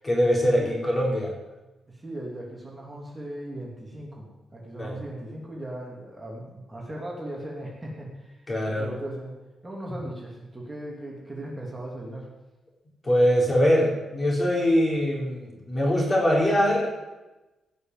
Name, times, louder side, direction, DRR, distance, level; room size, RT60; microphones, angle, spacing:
voice 1, 0.0-1.3 4.8-5.0 8.5-8.9 13.0-16.9, equal, 25° left, -1 dB, 4.2 m, -22 dB
voice 2, 1.9-9.3 9.6-12.3, right 1 dB, 15° right, -3 dB, 2.9 m, -38 dB
17.5 x 6.8 x 7.8 m, 1.1 s
cardioid pair, 110°, 0 cm